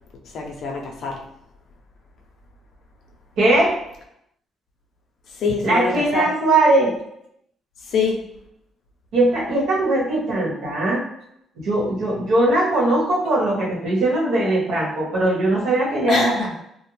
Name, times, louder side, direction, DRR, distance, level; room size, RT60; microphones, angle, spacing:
voice 1, 0.3-1.2 5.4-6.3 7.9-8.2 16.1-16.5, left 4 dB, 70° left, 1 dB, 0.6 m, -24 dB
voice 2, 3.4-3.7 5.6-6.9 9.1-11.0 11.6-16.5, right 2 dB, 80° right, -4 dB, 1.0 m, -20 dB
2.4 x 2.1 x 3.2 m, 0.76 s
cardioid pair, 90°, 0 cm